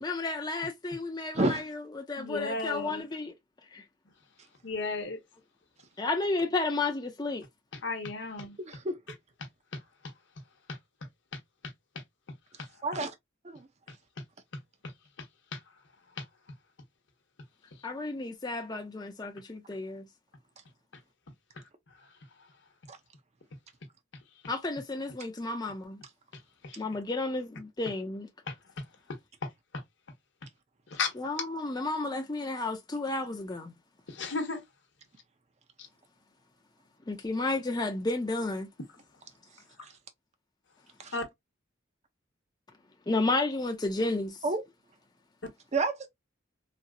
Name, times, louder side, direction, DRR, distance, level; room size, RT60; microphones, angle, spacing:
voice 1, 0.0-3.3 3.7-3.8 6.0-7.4 17.8-20.1 24.5-26.0 26.8-28.3 31.2-33.7 37.1-38.7 43.1-44.4, left 2 dB, 20° left, 0.5 m, -32 dB
voice 2, 2.2-3.1 4.6-5.2 7.8-8.6 26.6-26.8 28.5-28.6 30.9-31.1 34.1-34.6 41.1-41.2, left 3 dB, 65° left, 1.0 m, -33 dB
voice 3, 8.6-9.0 12.8-13.1 13.4-13.7 22.9-23.0 39.8-39.9 41.0-41.1 44.4-44.6 45.7-46.1, right 2 dB, 35° right, 0.6 m, -29 dB
4.1 x 2.0 x 2.3 m
head